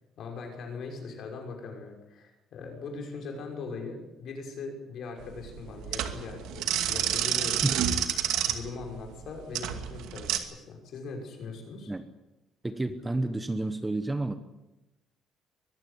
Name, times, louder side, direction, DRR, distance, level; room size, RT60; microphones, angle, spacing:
voice 1, 0.2-7.6 8.4-11.9, left 4 dB, 50° left, 2 dB, 5.8 m, -40 dB
sound 1, 5.2-10.4, right 10 dB, 85° right, 2.4 m, -29 dB
voice 2, 12.6-14.3, right 2 dB, 10° right, 10 dB, 1.0 m, -30 dB
23.0 x 15.0 x 10.0 m, 0.98 s
cardioid pair, 175°, 0 cm